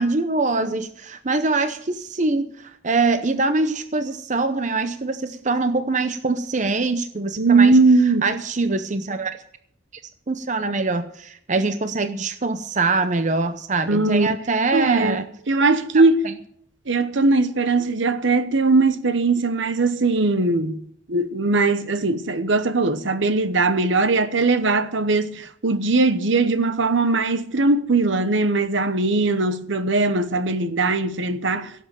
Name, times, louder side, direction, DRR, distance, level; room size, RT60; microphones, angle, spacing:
voice 1, 0.0-7.7 8.2-9.4 10.3-15.3 16.2-16.3, right 3 dB, 35° right, 0.7 m, -23 dB
voice 2, 7.4-8.3 13.9-14.3 14.7-16.2 16.9-20.8 21.1-31.7, right 3 dB, 65° right, 1.0 m, -20 dB
17.0 x 7.5 x 7.6 m
head